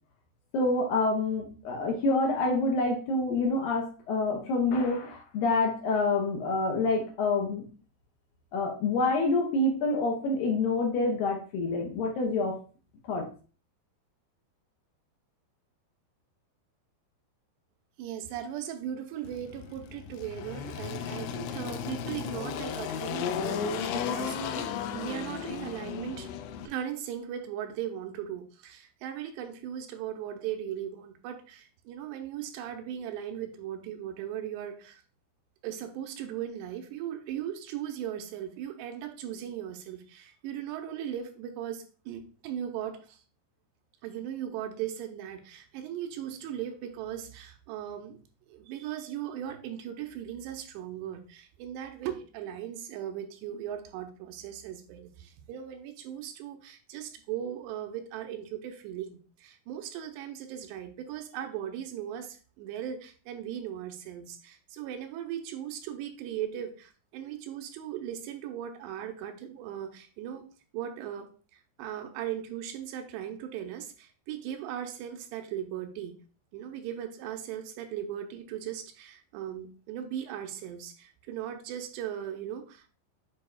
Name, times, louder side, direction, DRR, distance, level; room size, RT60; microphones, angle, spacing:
voice 1, 0.5-7.7 8.5-12.6 13.1-13.3, left 2 dB, 75° left, 0 dB, 2.2 m, -27 dB
voice 2, 18.0-26.3 26.7-35.0 35.6-43.2 44.0-48.2 48.5-70.5 70.7-76.1 76.5-82.9, right 10 dB, 90° right, 5 dB, 2.8 m, -38 dB
Engine, 19.2-26.7, left 7 dB, 90° left, 2.8 m, -35 dB
8.4 x 4.9 x 2.3 m, 0.37 s
omnidirectional pair, 4.9 m